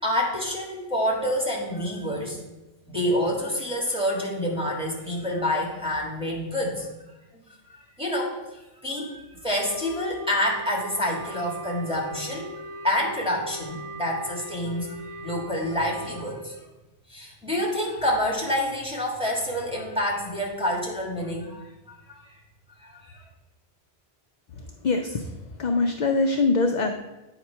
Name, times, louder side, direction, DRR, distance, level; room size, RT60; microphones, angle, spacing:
voice 1, 0.0-2.4 2.9-6.9 7.7-16.6 17.1-22.3 22.8-23.2, left 1 dB, 5° right, -3 dB, 1.5 m, -28 dB
Wind instrument woodwind instrument, 9.5-16.2, equal, 20° right, 1.0 m, -39 dB
voice 2, 24.5-27.0, left 3 dB, 55° left, 4 dB, 0.5 m, -24 dB
8.7 x 2.9 x 5.4 m, 1.0 s
omnidirectional pair, 1.1 m